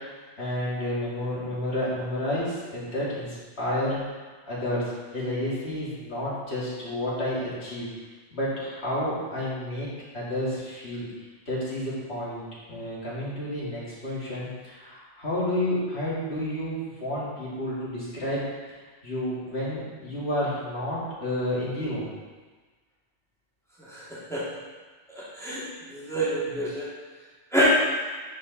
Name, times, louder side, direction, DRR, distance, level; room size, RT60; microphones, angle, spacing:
voice 1, 0.4-4.0 4.4-7.9 8.3-9.9 10.1-11.1 11.5-18.7 19.0-22.1 26.5-26.6, left 1 dB, 60° left, -8 dB, 2.8 m, -30 dB
voice 2, 25.2-26.9 27.5-27.6, right 1 dB, ahead, -10 dB, 2.6 m, -28 dB
9.3 x 5.4 x 4.1 m, 1.3 s
omnidirectional pair, 1.3 m